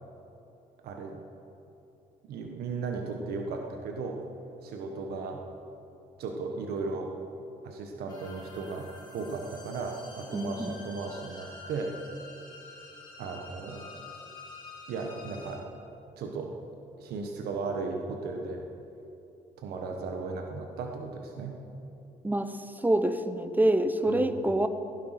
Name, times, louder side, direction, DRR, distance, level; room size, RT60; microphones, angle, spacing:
voice 1, 0.8-1.2 2.3-4.2 4.6-5.4 6.2-7.1 7.6-11.9 13.2-13.9 14.9-15.6 16.2-16.5 17.0-18.6 19.6-21.6 24.1-24.4, right 4 dB, 80° right, 2 dB, 1.4 m, -36 dB
sound 1, 8.1-15.6, left 3 dB, 25° left, 3.9 m, -48 dB
voice 2, 10.3-10.8 22.2-22.5 22.8-24.7, right 1 dB, 10° right, 9 dB, 1.0 m, -26 dB
16.5 x 11.0 x 6.0 m, 2.8 s
cardioid pair, 90°, 16 cm